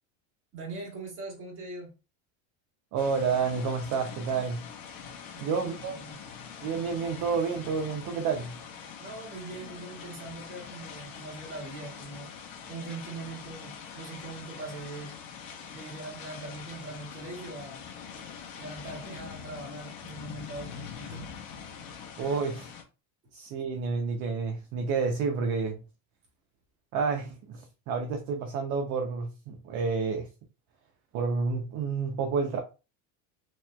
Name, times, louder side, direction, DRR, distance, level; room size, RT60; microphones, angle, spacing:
voice 1, 0.5-1.9 5.3-6.2 9.0-12.3 12.7-15.2 15.7-17.8 18.6-21.3, right 3 dB, 30° right, 1.6 m, -41 dB
voice 2, 2.9-4.6 5.4-6.0 6.6-8.5 22.2-22.7 23.3-25.8 26.9-30.3 31.1-32.6, right 5 dB, 50° right, 0.6 m, -29 dB
sound 1, 3.0-22.8, left 7 dB, 55° left, 0.9 m, -44 dB
3.1 x 2.8 x 2.2 m
cardioid pair, 145°, 40 cm